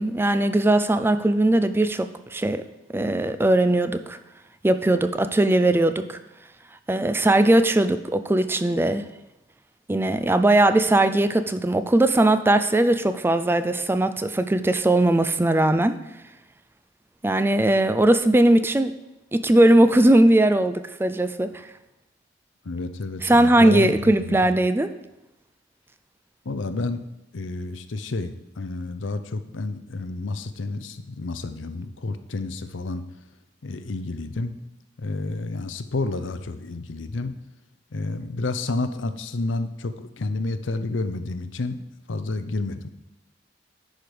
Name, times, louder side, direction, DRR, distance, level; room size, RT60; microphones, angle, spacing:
voice 1, 0.0-2.6 2.9-4.2 4.6-6.2 6.9-9.0 9.9-16.0 17.2-18.9 19.3-21.5 23.2-24.9, right 1 dB, 10° right, 11 dB, 0.4 m, -19 dB
voice 2, 22.6-24.4 26.4-27.0 27.3-33.0 33.6-34.5 35.0-37.3 37.9-42.9, left 3 dB, 90° left, 10 dB, 0.7 m, -30 dB
10.5 x 5.2 x 5.0 m, 0.98 s
head